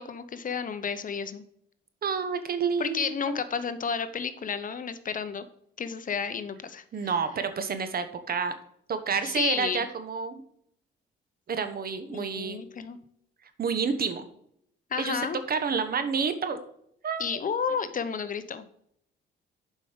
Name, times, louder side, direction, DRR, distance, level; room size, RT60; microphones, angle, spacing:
voice 1, 0.0-1.4 2.8-5.5 5.8-7.1 9.2-9.9 12.1-13.0 14.9-15.4 17.2-18.6, left 6 dB, 40° left, 12 dB, 0.8 m, -31 dB
voice 2, 2.0-3.4 6.9-8.5 8.9-10.4 11.5-12.6 13.6-14.2 15.0-15.2 15.5-16.6 17.0-17.2, right 5 dB, 50° right, 9 dB, 1.2 m, -29 dB
7.3 x 5.3 x 5.1 m, 0.71 s
cardioid pair, 90°, 20 cm